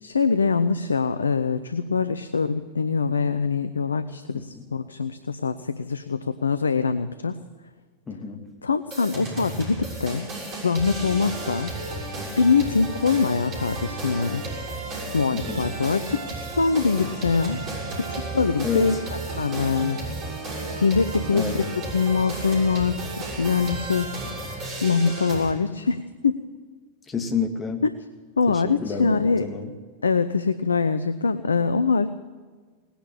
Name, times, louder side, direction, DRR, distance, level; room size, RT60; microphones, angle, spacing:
voice 1, 0.0-7.4 8.6-10.2 10.6-11.7 12.4-14.4 15.1-17.6 18.0-19.0 19.4-20.0 20.8-21.6 21.9-24.2 24.4-26.3 28.4-29.5 30.0-32.1, left 5 dB, 75° left, 12 dB, 0.6 m, -23 dB
voice 2, 8.1-8.5 15.3-15.6 18.6-19.0 21.3-21.6 27.1-27.8 28.5-29.7, left 5 dB, 20° left, 5 dB, 1.9 m, -29 dB
sound 1, 8.9-25.5, right 2 dB, 30° right, 6.2 m, -33 dB
19.0 x 10.5 x 7.0 m, 1.5 s
figure-of-eight pair, 90°, 0 cm